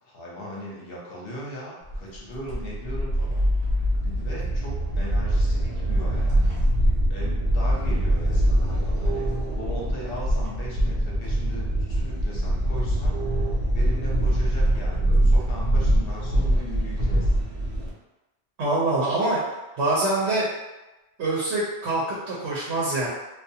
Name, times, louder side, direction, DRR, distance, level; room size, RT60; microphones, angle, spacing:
voice 1, 0.0-3.4 4.0-6.6 7.1-13.2 13.7-17.3, equal, 60° left, -4 dB, 0.9 m, -38 dB
sound 1, 1.9-17.9, right 1 dB, 55° right, 0.7 m, -23 dB
voice 2, 18.6-19.4 19.8-20.5 21.2-23.1, right 2 dB, 80° right, -7 dB, 0.9 m, -24 dB
2.4 x 2.3 x 2.7 m, 1.0 s
omnidirectional pair, 1.1 m